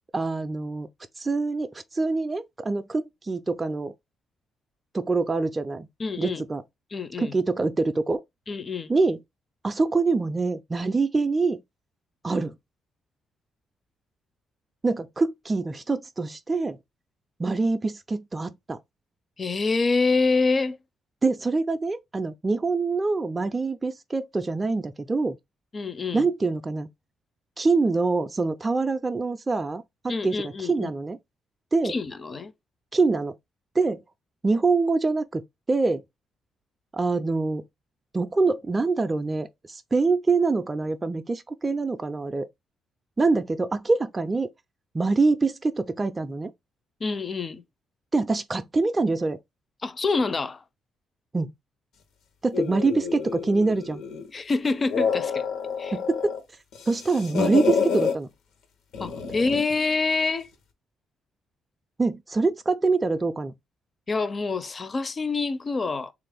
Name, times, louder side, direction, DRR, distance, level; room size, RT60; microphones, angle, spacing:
voice 1, 0.1-0.9 1.2-3.9 4.9-5.9 6.2-6.6 7.2-8.2 8.9-9.2 9.6-11.6 12.2-12.5 14.8-16.8 17.4-18.8 21.2-25.4 26.1-26.9 27.6-31.2 31.7-31.9 32.9-33.3 33.8-34.0 34.4-35.4 35.7-36.0 36.9-37.6 38.1-42.5 43.2-44.5 44.9-46.5 48.1-49.4 51.3-51.5 52.4-54.0 55.9-56.3 56.9-58.3 62.0-63.5, right 3 dB, 25° right, 0.3 m, -25 dB
voice 2, 6.0-6.4 6.9-7.3 8.5-8.9 19.4-20.8 25.7-26.3 30.1-30.9 31.8-32.5 47.0-47.6 49.8-50.6 54.3-55.4 55.8-56.0 59.0-60.5 64.1-66.1, left 4 dB, 35° left, 0.5 m, -26 dB
sound 1, 52.5-54.3 54.7-56.4 56.7-58.2 58.9-59.7, left 6 dB, 85° left, 0.8 m, -28 dB
3.3 x 2.4 x 3.4 m
cardioid pair, 90°, 0 cm